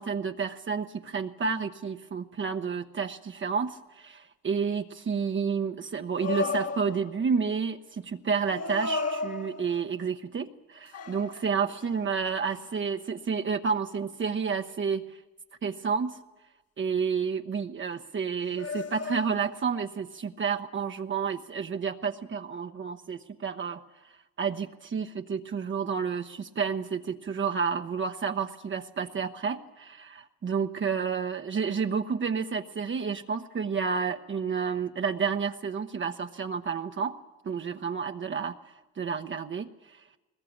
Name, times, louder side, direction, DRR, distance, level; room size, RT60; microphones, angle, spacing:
voice 1, 0.0-15.2 15.6-16.2 16.8-23.8 24.4-37.2 37.4-38.6 39.0-40.0, right 6 dB, 40° right, 6 dB, 0.9 m, -30 dB
sound 1, 6.2-7.3 8.5-10.0 10.9-11.9 12.5-12.7 18.6-19.7, left 4 dB, 55° left, 1.7 m, -34 dB
20.5 x 20.5 x 8.7 m, 1.1 s
cardioid pair, 90°, 30 cm